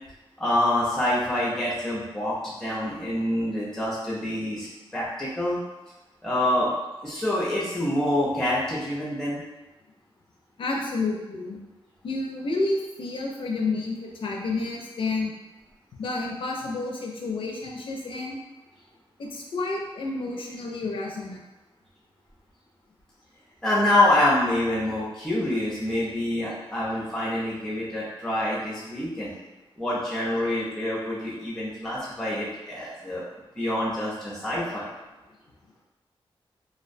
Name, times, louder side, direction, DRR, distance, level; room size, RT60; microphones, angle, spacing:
voice 1, 0.4-4.7 4.9-5.6 6.2-6.7 7.0-9.4 23.6-29.3 29.8-33.2 33.6-34.9, left 1 dB, 5° left, -7 dB, 0.4 m, -26 dB
voice 2, 10.6-11.6 12.0-15.3 16.0-18.4 19.2-21.4, left 3 dB, 60° left, 0 dB, 0.4 m, -30 dB
2.4 x 2.1 x 2.5 m, 1.1 s
wide cardioid pair, 175°, 10 cm